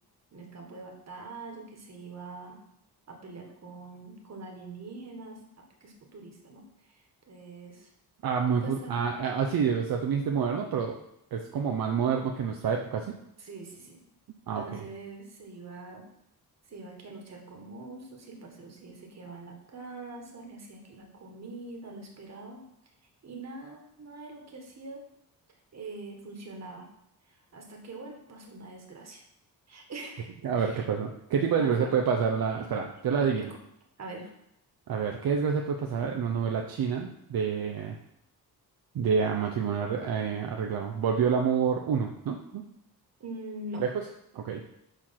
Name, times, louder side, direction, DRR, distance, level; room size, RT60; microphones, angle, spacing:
voice 1, 0.3-2.6 3.1-7.9 8.5-9.0 13.4-14.0 14.5-16.1 16.6-22.6 23.2-25.0 25.7-26.9 27.2-29.2 29.7-30.9 31.6-31.9 32.9-33.0 33.4-33.6 34.0-34.3 43.2-43.8, right 2 dB, 45° right, 2 dB, 1.6 m, -44 dB
voice 2, 8.2-11.0 11.3-13.1 14.5-14.8 30.4-33.5 34.9-38.0 38.9-42.6 43.8-44.0 44.3-44.6, right 6 dB, 65° right, 2 dB, 0.8 m, -28 dB
6.7 x 4.5 x 5.8 m, 0.78 s
wide cardioid pair, 125°, 38 cm